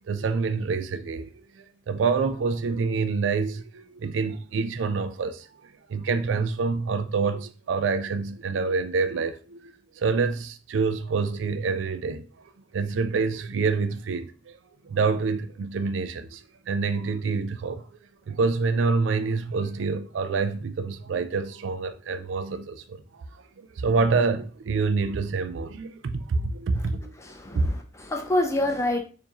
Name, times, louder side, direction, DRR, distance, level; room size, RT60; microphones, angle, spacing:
voice 1, 0.1-1.3 1.6-5.5 5.9-12.3 12.7-14.6 14.8-17.8 18.3-23.2 23.6-27.1 27.5-27.7, right 4 dB, 85° right, 0.4 m, -27 dB
voice 2, 27.2-29.0, left 1 dB, 15° left, 0.5 m, -27 dB
4.5 x 2.6 x 2.9 m
head